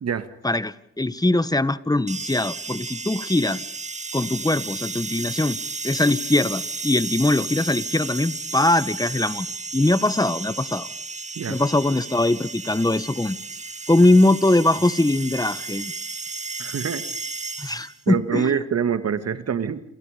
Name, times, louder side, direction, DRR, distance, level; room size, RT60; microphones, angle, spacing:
voice 1, 0.4-3.6 4.1-5.6 5.8-9.5 9.7-10.9 11.5-13.4 13.9-15.9 17.6-18.6, left 2 dB, 10° left, 15 dB, 1.6 m, -21 dB
sound 1, 2.1-18.0, right 3 dB, 20° right, 1.7 m, -33 dB
voice 2, 16.6-17.0 18.1-19.8, right 7 dB, 50° right, 11 dB, 2.3 m, -25 dB
28.5 x 28.0 x 5.3 m, 0.70 s
hypercardioid pair, 50°, 33 cm